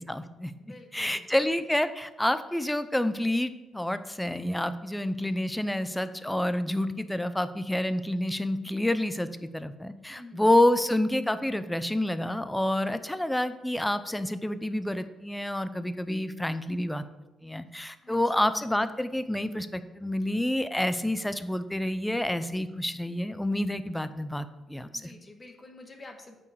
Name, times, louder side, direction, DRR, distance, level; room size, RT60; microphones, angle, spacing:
voice 1, 0.0-0.5 0.9-9.3 9.5-17.0 17.4-25.1, left 1 dB, 5° left, 12 dB, 0.5 m, -28 dB
voice 2, 0.6-1.5 10.1-10.5 18.0-18.4 24.9-26.4, left 2 dB, 30° left, 4 dB, 1.3 m, -49 dB
8.4 x 4.7 x 4.8 m, 1.0 s
cardioid pair, 90°, 0 cm